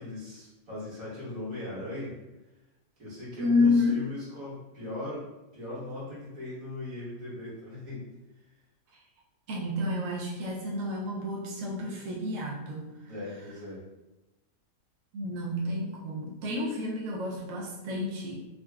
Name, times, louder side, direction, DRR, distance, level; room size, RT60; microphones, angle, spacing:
voice 1, 0.0-2.2 3.0-8.1 13.1-13.8, left 1 dB, 55° right, -8 dB, 1.6 m, -39 dB
voice 2, 3.4-4.0 9.5-13.1 15.1-18.4, left 2 dB, 75° right, -3 dB, 0.7 m, -29 dB
3.8 x 2.2 x 2.2 m, 1.0 s
omnidirectional pair, 1.8 m